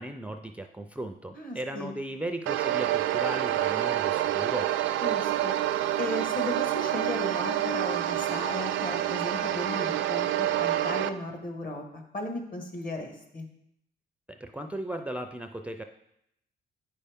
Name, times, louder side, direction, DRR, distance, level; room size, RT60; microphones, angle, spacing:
voice 1, 0.0-4.8 14.3-15.8, right 1 dB, 5° right, 5 dB, 0.4 m, -36 dB
voice 2, 1.4-2.0 5.0-5.5 6.0-13.5, left 1 dB, 45° left, 3 dB, 1.6 m, -36 dB
sound 1, 2.5-11.1, right 12 dB, 80° right, 0.4 m, -27 dB
8.8 x 5.5 x 3.5 m, 0.78 s
cardioid pair, 90°, 20 cm